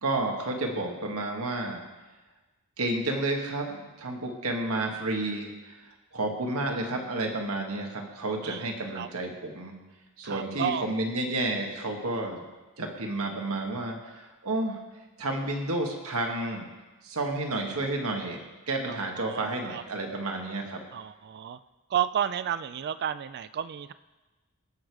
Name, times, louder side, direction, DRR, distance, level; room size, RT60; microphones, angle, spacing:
voice 1, 0.0-1.8 2.8-5.8 6.1-9.8 10.2-12.4 12.8-14.8 15.2-16.7 17.0-18.4 18.7-20.8, right 2 dB, 70° right, 2 dB, 1.8 m, -31 dB
voice 2, 10.2-10.8 18.9-19.8 20.9-21.6 21.9-23.9, right 9 dB, 45° right, 15 dB, 0.3 m, -32 dB
18.0 x 6.5 x 4.8 m, 1.2 s
head